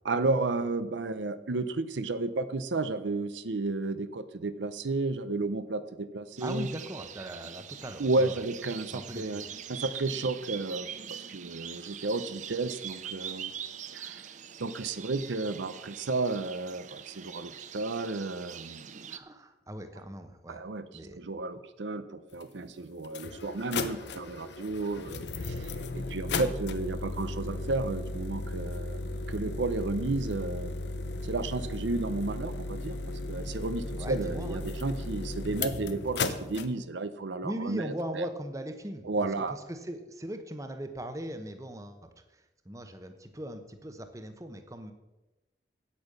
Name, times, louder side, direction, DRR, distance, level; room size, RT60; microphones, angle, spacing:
voice 1, 0.0-6.7 8.0-9.4 9.7-13.5 13.9-14.2 14.6-18.9 20.5-29.0 29.3-30.7 31.2-33.0 33.3-38.3 39.0-39.6, right 3 dB, 85° right, 12 dB, 0.7 m, -32 dB
voice 2, 6.4-8.4 8.9-9.5 19.1-20.7 20.9-21.2 21.5-21.6 33.9-34.6 37.4-42.1 42.6-44.9, right 1 dB, 20° right, 7 dB, 0.9 m, -39 dB
sound 1, 6.4-19.2, right 8 dB, 40° right, 0.5 m, -43 dB
sound 2, 22.4-22.5 23.0-36.7, left 3 dB, 75° left, 0.8 m, -35 dB
8.9 x 8.6 x 6.6 m, 1.0 s
head